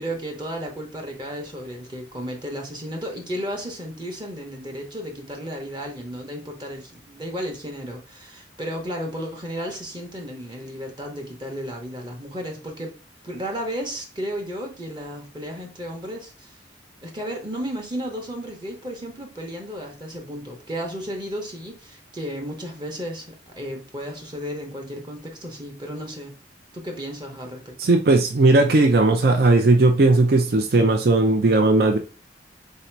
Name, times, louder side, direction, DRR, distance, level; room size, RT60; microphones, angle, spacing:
voice 1, 0.0-13.0 13.2-16.6 17.0-26.3 26.7-27.8, equal, 25° right, 2 dB, 0.8 m, -33 dB
voice 2, 27.8-32.0, right 2 dB, 55° right, 4 dB, 0.5 m, -17 dB
4.0 x 2.7 x 4.4 m, 0.36 s
head